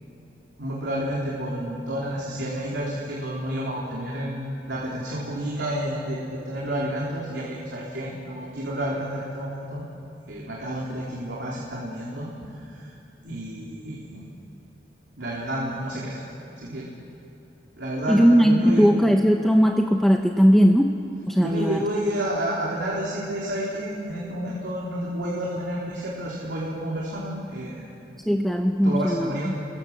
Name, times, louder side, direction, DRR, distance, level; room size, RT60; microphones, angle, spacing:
voice 1, 0.6-9.8 10.3-12.9 13.2-14.3 15.2-16.2 16.6-16.9 17.7-18.9 21.4-27.9 28.8-29.6, right 1 dB, 80° right, -5 dB, 3.7 m, -30 dB
voice 2, 18.1-20.9 21.3-21.8 28.3-29.5, equal, ahead, 2 dB, 0.9 m, -19 dB
29.5 x 22.0 x 7.4 m, 2.8 s
head